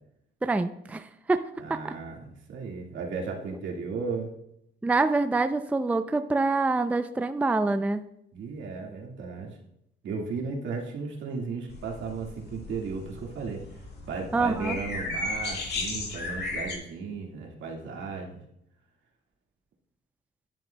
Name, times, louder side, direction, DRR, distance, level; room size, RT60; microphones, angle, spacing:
voice 1, 0.4-1.4 1.7-1.9 4.8-8.1 14.3-14.8, right 3 dB, 5° right, 11 dB, 0.4 m, -26 dB
voice 2, 1.6-4.3 8.3-9.6 10.0-13.6 14.1-18.4, right 4 dB, 75° right, 0 dB, 1.9 m, -35 dB
sound 1, 11.7-16.8, left 2 dB, 55° left, 2.0 m, -35 dB
10.5 x 7.6 x 2.2 m, 0.76 s
cardioid pair, 90°, 20 cm